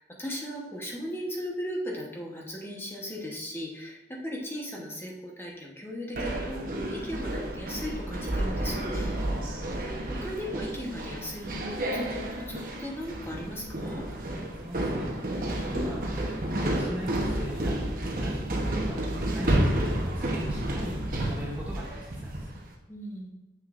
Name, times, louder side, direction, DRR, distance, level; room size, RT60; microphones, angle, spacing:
voice 1, 0.0-9.6 10.2-12.2 12.5-14.1 22.9-23.3, equal, 15° left, -2 dB, 1.1 m, -37 dB
sound 1, 6.2-22.6, right 1 dB, 50° right, 1.0 m, -31 dB
voice 2, 14.5-15.1 15.6-16.1 16.6-17.8 18.1-19.0 19.3-22.6, equal, 10° right, -4 dB, 0.8 m, -39 dB
7.0 x 6.4 x 2.5 m, 1.1 s
head